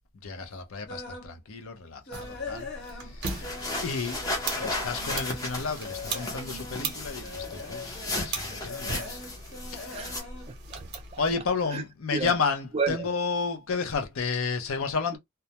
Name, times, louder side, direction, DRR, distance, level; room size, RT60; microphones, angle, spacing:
voice 1, 0.2-3.5 3.8-4.2 4.6-9.2 9.7-10.1 11.2-15.2, left 5 dB, 85° left, 0.7 m, -32 dB
sound 1, 0.9-1.3 1.7-3.9 4.2-11.4 11.8-12.0 12.5-12.6 13.0-13.1, left 3 dB, 55° left, 1.1 m, -41 dB
sound 2, 2.1-11.4, right 4 dB, 50° right, 0.7 m, -39 dB
sound 3, 3.2-10.2, left 2 dB, 15° left, 0.7 m, -35 dB
voice 2, 9.9-11.2 11.7-11.8 12.1-12.3 12.7-13.1, right 4 dB, 30° right, 0.4 m, -32 dB
2.2 x 2.1 x 2.8 m
head